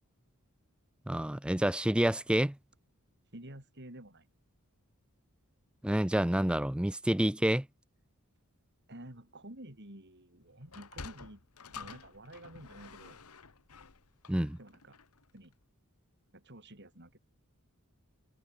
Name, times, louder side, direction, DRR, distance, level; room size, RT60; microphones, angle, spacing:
voice 1, 1.1-2.6 5.8-7.7 14.3-14.6, right 1 dB, 5° right, 0.4 m, -28 dB
voice 2, 3.3-4.3 8.9-11.4 11.7-13.2 14.6-15.0 15.3-15.5 16.3-17.2, right 1 dB, 50° right, 5.4 m, -50 dB
Sliding door, 10.6-15.2, left 5 dB, 85° left, 1.6 m, -49 dB
head